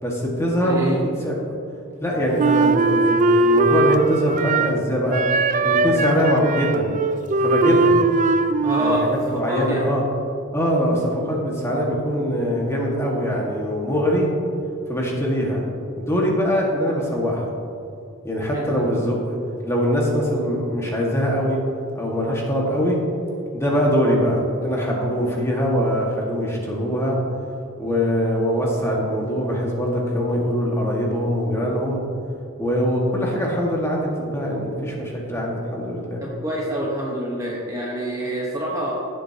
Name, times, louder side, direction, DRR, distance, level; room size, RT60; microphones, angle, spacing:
voice 1, 0.0-1.4 2.0-5.2 5.6-6.9 7.4-8.0 8.8-10.0 10.5-14.3 14.9-15.6 16.0-17.5 18.2-19.4 19.6-21.6 21.9-23.0 23.5-27.2 27.8-32.0 32.6-36.2, equal, 15° left, -3 dB, 1.7 m, -22 dB
voice 2, 0.6-1.0 8.6-9.1 9.5-10.0 18.5-18.8 36.2-38.9, equal, 15° right, -4 dB, 1.1 m, -26 dB
Wind instrument woodwind instrument, 2.4-4.8 5.1-9.2, right 3 dB, 35° right, 0.3 m, -20 dB
16.5 x 7.8 x 2.8 m, 2.6 s
head